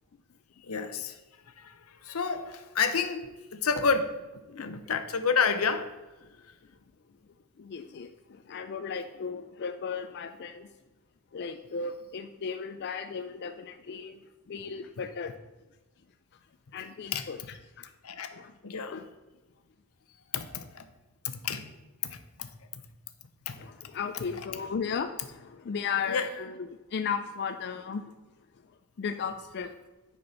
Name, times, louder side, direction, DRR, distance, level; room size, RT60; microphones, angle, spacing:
voice 1, 0.7-1.1 2.1-3.2 3.5-4.1 4.6-5.8 17.1-17.2 18.0-18.3 18.6-19.0 20.3-20.8 21.4-21.6 22.0-22.2 23.5-23.6 26.1-26.2, left 5 dB, 85° left, 9 dB, 0.8 m, -29 dB
voice 2, 7.6-10.7 11.3-14.2 14.5-15.3 16.7-17.9 18.3-19.0 23.6-28.0 29.0-29.7, left 6 dB, 50° left, 8 dB, 0.4 m, -36 dB
9.8 x 4.3 x 5.5 m, 1.1 s
head